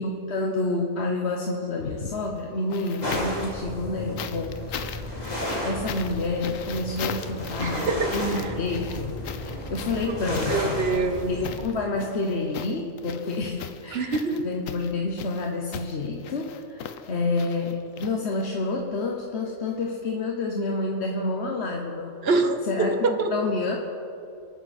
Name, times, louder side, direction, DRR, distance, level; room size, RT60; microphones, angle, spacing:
voice 1, 0.0-4.9 5.6-10.8 11.3-22.2 22.6-23.8, left 3 dB, 50° left, 1 dB, 1.3 m, -29 dB
sound 1, 1.7-3.5 4.2-18.7 19.8-19.9, left 8 dB, 70° left, 1.1 m, -39 dB
sound 2, 3.0-11.6, left 1 dB, 30° left, 2.7 m, -33 dB
voice 2, 7.6-8.5 10.3-11.3 13.9-14.5 22.2-22.6 23.0-23.3, right 3 dB, 50° right, 7 dB, 1.2 m, -25 dB
24.0 x 9.5 x 4.3 m, 2.7 s
omnidirectional pair, 1.5 m